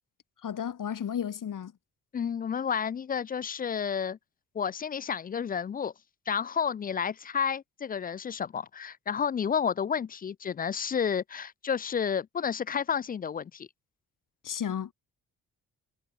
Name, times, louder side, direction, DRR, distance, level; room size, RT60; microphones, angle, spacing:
voice 1, 0.4-1.7 14.4-14.9, left 9 dB, 45° left, 2.2 m, -33 dB
voice 2, 2.1-4.2 4.5-5.9 6.3-13.7, left 7 dB, 20° left, 0.4 m, -31 dB
figure-of-eight pair, 40°, 44 cm